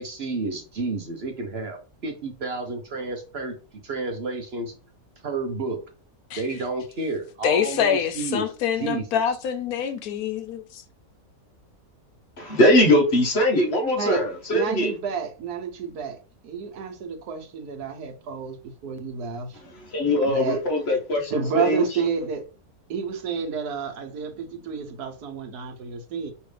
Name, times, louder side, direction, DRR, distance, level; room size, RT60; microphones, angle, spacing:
voice 1, 0.0-3.6 3.8-4.7 5.2-5.8 6.4-8.5 8.8-9.1, right 3 dB, 50° right, 0.9 m, -30 dB
voice 2, 7.4-10.8, left 8 dB, 80° left, 1.1 m, -25 dB
voice 3, 12.4-14.9 19.6-21.8, left 1 dB, 50° left, 1.1 m, -21 dB
voice 4, 14.5-16.2 16.4-19.6 20.2-20.6 21.3-22.4 22.9-26.3, right 6 dB, 85° right, 1.4 m, -30 dB
5.3 x 3.1 x 3.2 m
omnidirectional pair, 1.6 m